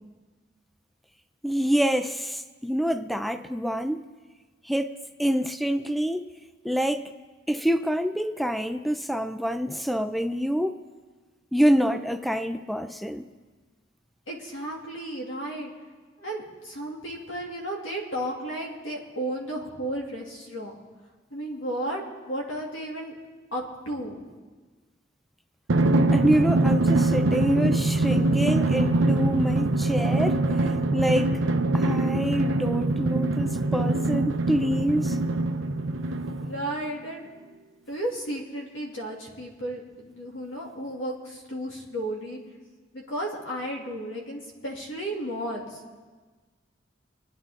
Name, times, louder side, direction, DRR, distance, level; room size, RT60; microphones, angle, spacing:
voice 1, 1.4-4.1 4.7-6.3 6.6-7.1 7.5-10.8 11.5-13.3 26.1-30.4 30.9-31.4 31.7-35.2, equal, ahead, 0.4 m, -26 dB
voice 2, 14.3-15.7 16.2-20.7 21.3-23.1 23.5-24.2 36.4-37.3 37.9-42.4 42.9-45.8, right 1 dB, 85° left, 2.6 m, -33 dB
Drum, 25.7-36.7, right 2 dB, 75° right, 0.7 m, -23 dB
25.5 x 9.8 x 3.7 m
head